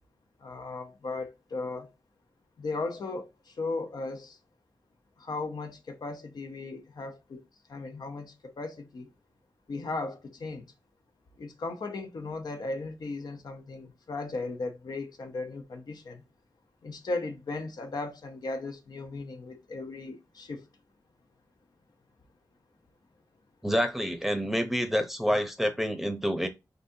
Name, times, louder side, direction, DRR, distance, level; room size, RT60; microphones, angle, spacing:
voice 1, 0.4-1.9 2.6-4.4 5.2-7.4 7.7-9.1 9.7-10.6 11.4-16.2 16.8-20.7, left 3 dB, 70° left, 0.8 m, -36 dB
voice 2, 23.6-26.5, equal, 5° right, 0.7 m, -28 dB
4.0 x 3.6 x 2.7 m
wide cardioid pair, 115°, 7 cm